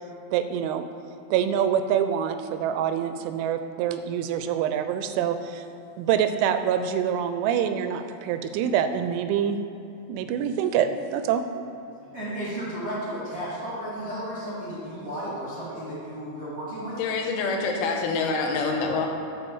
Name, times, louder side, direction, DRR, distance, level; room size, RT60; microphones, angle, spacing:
voice 1, 0.3-0.8 1.3-5.6 6.0-9.6 10.1-11.5, right 9 dB, 85° right, 9 dB, 2.8 m, -25 dB
voice 2, 12.1-17.0, right 1 dB, 35° right, -10 dB, 1.4 m, -33 dB
voice 3, 17.0-19.1, left 4 dB, 75° left, 1 dB, 3.3 m, -26 dB
10.5 x 5.6 x 7.1 m, 2.9 s
omnidirectional pair, 5.8 m